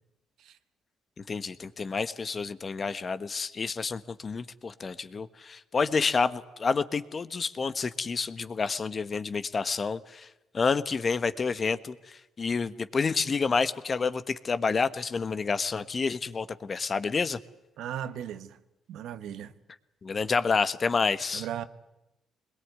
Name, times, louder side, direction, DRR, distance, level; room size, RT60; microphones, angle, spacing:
voice 1, 1.3-10.3 10.5-17.4 20.0-21.5, left 4 dB, 40° left, 1.3 m, -29 dB
voice 2, 17.8-18.6 18.9-19.5 21.3-21.6, right 10 dB, 80° right, 1.4 m, -36 dB
23.0 x 21.5 x 9.6 m
cardioid pair, 90°, 0 cm